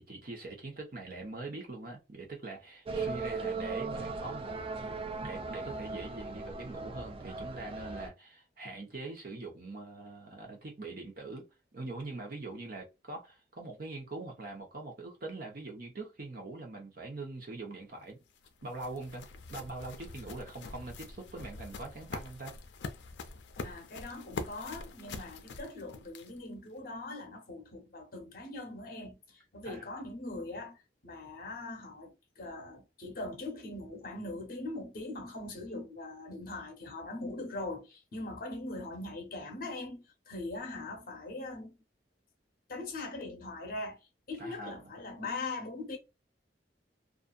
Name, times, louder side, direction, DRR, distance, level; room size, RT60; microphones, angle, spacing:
voice 1, 0.0-4.6 5.2-18.2 18.6-19.2 19.5-22.5 29.6-30.0 44.4-44.9, right 3 dB, 55° right, 0.8 m, -43 dB
sound 1, 2.8-8.1, right 4 dB, 30° right, 0.3 m, -38 dB
sound 2, 18.0-26.5, left 3 dB, 90° left, 0.4 m, -44 dB
voice 2, 23.6-41.8 42.7-44.0 44.3-46.0, left 2 dB, 55° left, 0.8 m, -41 dB
2.6 x 2.4 x 2.3 m
head